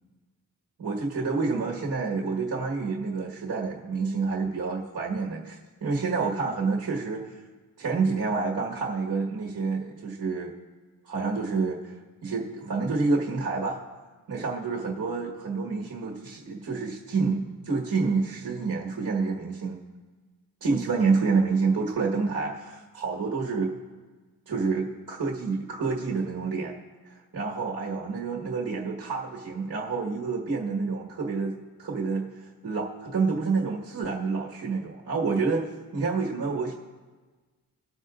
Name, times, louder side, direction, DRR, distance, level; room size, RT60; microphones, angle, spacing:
voice 1, 0.8-7.2 7.8-10.5 11.1-11.9 12.2-13.8 14.3-19.8 20.6-23.7 24.5-26.7 27.0-32.3 32.6-35.7 35.9-36.7, right 4 dB, 60° right, -2 dB, 1.5 m, -28 dB
19.5 x 8.1 x 2.5 m, 1.3 s
wide cardioid pair, 100°, 36 cm